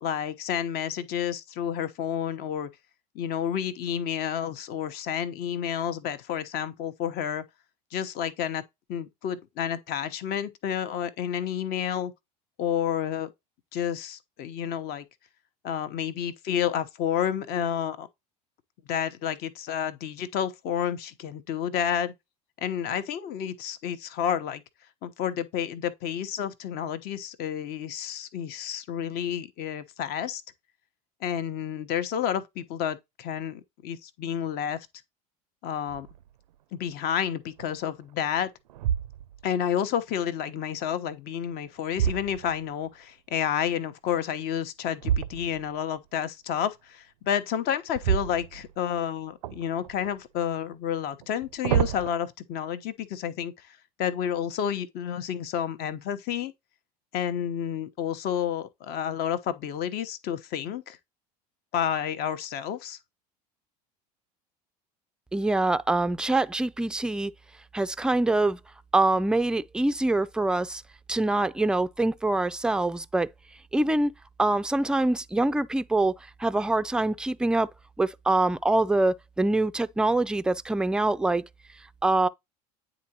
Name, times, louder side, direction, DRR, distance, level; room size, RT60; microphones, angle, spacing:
voice 1, 0.0-2.7 3.1-7.4 7.9-8.6 8.9-12.1 12.6-13.3 13.7-15.1 15.6-18.1 18.9-22.1 22.6-24.6 25.0-30.4 31.2-34.9 35.6-36.1 36.7-38.5 39.4-56.5 57.1-61.0 61.7-63.0, left 9 dB, 50° left, 0.9 m, -30 dB
sound 1, 35.9-36.3 36.9-37.0 37.6-38.1 38.7-39.6 41.2-42.9 45.0-45.8 47.9-49.0 49.4-50.2 51.2-52.1, right 10 dB, 80° right, 0.4 m, -30 dB
voice 2, 65.3-67.3 67.7-68.6 68.9-70.8 71.1-73.3 73.7-74.1 74.4-76.1 76.4-77.7 78.0-81.4 82.0-82.3, right 2 dB, 5° right, 0.3 m, -24 dB
9.4 x 3.9 x 2.9 m
hypercardioid pair, 75°, 21 cm